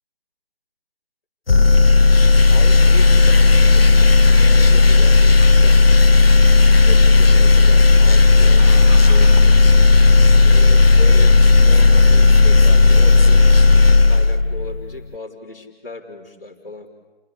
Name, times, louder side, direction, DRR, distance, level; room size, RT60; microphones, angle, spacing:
sound 1, 1.5-14.9, left 3 dB, 70° left, 0.8 m, -12 dB
voice 1, 2.5-5.9 6.8-9.6 10.4-11.3 11.6-13.8 14.1-16.9, left 2 dB, 15° left, -6 dB, 3.9 m, -36 dB
Car / Engine starting, 8.6-14.0, right 1 dB, 50° right, 4.3 m, -29 dB
29.5 x 21.0 x 8.6 m, 1.1 s
figure-of-eight pair, 165°, 30 cm